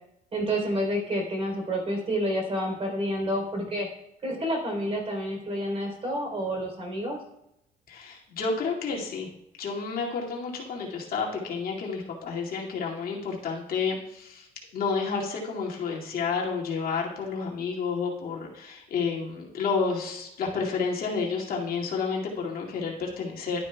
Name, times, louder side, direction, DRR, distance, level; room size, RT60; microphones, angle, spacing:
voice 1, 0.3-3.9 4.2-7.2, equal, 35° right, 1 dB, 3.6 m, -29 dB
voice 2, 7.9-9.3 9.6-23.7, left 5 dB, 60° left, -2 dB, 2.3 m, -30 dB
11.5 x 9.7 x 2.3 m, 0.83 s
cardioid pair, 110°, 17 cm